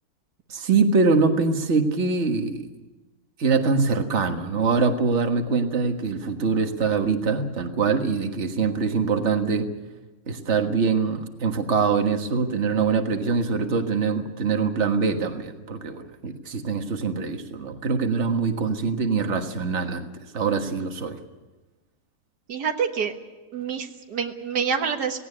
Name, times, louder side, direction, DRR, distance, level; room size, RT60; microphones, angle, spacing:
voice 1, 0.5-2.6 3.4-9.7 10.3-20.1 20.3-21.2, right 4 dB, 45° right, 5 dB, 1.8 m, -23 dB
voice 2, 22.5-23.1 23.5-25.2, right 6 dB, 85° right, 5 dB, 2.0 m, -27 dB
18.0 x 17.5 x 9.7 m, 1.1 s
omnidirectional pair, 1.7 m